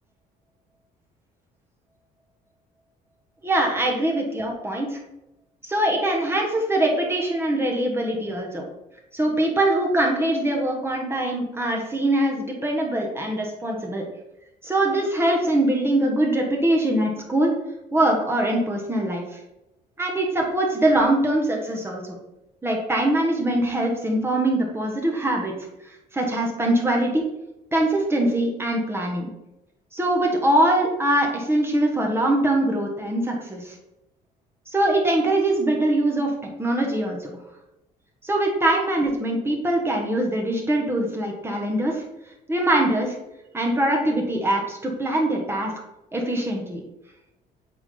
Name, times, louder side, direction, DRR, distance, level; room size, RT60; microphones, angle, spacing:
voice 1, 3.4-5.0 5.6-8.6 9.1-14.1 14.6-17.5 17.9-19.4 20.0-22.2 22.6-25.5 26.1-27.3 27.7-29.3 29.9-33.7 34.7-36.3 36.6-37.3 38.2-42.1 42.5-43.2 43.5-45.7 46.1-46.8, right 1 dB, 15° right, 0 dB, 1.4 m, -23 dB
8.1 x 3.7 x 3.8 m, 0.91 s
cardioid pair, 110°, 17 cm